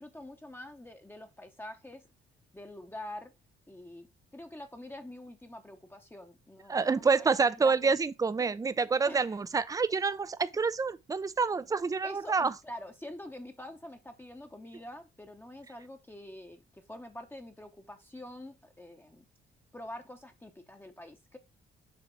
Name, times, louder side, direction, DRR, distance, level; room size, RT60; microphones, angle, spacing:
voice 1, 0.0-2.0 2.5-3.3 3.7-4.1 4.3-7.9 9.0-9.4 12.0-19.2 19.7-21.4, left 1 dB, 10° left, 0.9 m, -46 dB
voice 2, 6.7-12.5, right 4 dB, 15° right, 0.5 m, -27 dB
7.0 x 3.3 x 5.7 m
cardioid pair, 90°, 20 cm